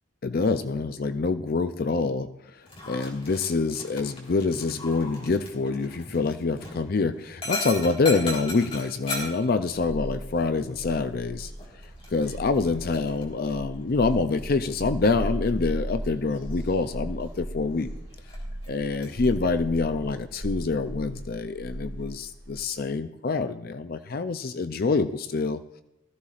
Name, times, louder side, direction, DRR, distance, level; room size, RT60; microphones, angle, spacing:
voice 1, 0.2-11.5 12.1-17.9 18.7-25.6, left 3 dB, 50° left, 10 dB, 0.5 m, -26 dB
Dog, 2.6-19.2, left 2 dB, 30° left, 3.6 m, -40 dB
sound 1, 9.4-22.6, equal, 65° right, 2.0 m, -37 dB
20.0 x 14.5 x 2.5 m, 0.90 s
head